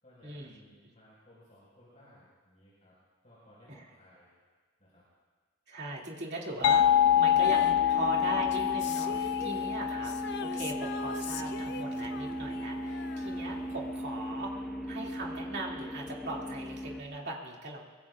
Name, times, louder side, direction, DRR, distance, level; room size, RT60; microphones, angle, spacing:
voice 1, 0.0-3.0 3.2-4.3 4.8-5.0, left 1 dB, 35° left, -9 dB, 5.1 m, -59 dB
voice 2, 5.7-6.9 7.1-17.9, right 2 dB, 50° right, -2 dB, 2.5 m, -39 dB
sound 1, 6.6-12.1, left 10 dB, 85° left, 0.3 m, -27 dB
sound 2, 6.6-17.0, right 1 dB, ahead, 1.1 m, -38 dB
Female singing, 7.4-14.0 14.3-14.4, left 4 dB, 50° left, 0.6 m, -43 dB
23.0 x 22.5 x 2.5 m, 1.5 s
head